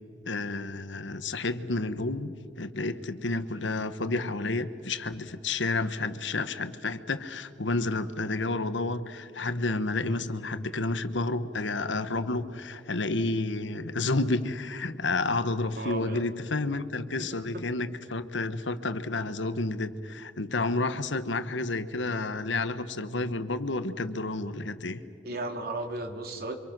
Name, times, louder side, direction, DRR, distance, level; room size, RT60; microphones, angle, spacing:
voice 1, 0.2-25.0, left 2 dB, 85° left, 11 dB, 1.3 m, -30 dB
voice 2, 15.8-16.2 17.2-17.3 25.2-26.5, right 2 dB, 55° right, 5 dB, 2.6 m, -34 dB
29.0 x 26.0 x 6.2 m, 2.4 s
head